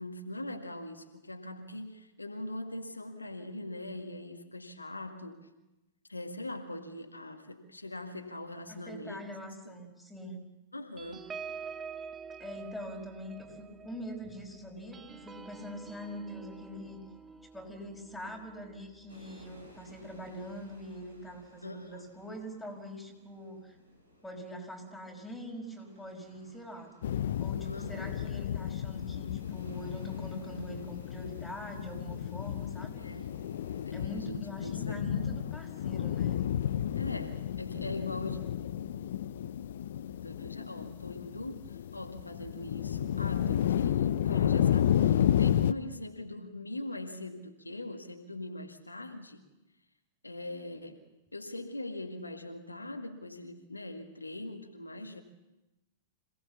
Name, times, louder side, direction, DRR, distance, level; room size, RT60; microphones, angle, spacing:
voice 1, 0.0-5.5 6.1-9.2 9.6-9.8 10.7-11.3 21.6-22.1 27.6-28.1 32.9-33.4 33.8-35.0 37.0-38.4 40.2-49.4 50.2-51.0 51.3-55.2, left 1 dB, 85° left, 4 dB, 1.9 m, -41 dB
voice 2, 8.7-10.4 12.4-17.0 17.5-23.8 24.2-26.9 27.4-33.0 33.9-36.4, equal, ahead, 1 dB, 5.4 m, -43 dB
sound 1, 11.0-19.9 20.3-20.5 20.8-21.1, right 6 dB, 20° right, 1.0 m, -47 dB
sound 2, 19.1-38.0, equal, 85° right, 5.8 m, -60 dB
sound 3, 27.0-45.7, left 10 dB, 60° left, 0.7 m, -32 dB
26.5 x 18.0 x 7.2 m, 1.0 s
figure-of-eight pair, 100°, 0 cm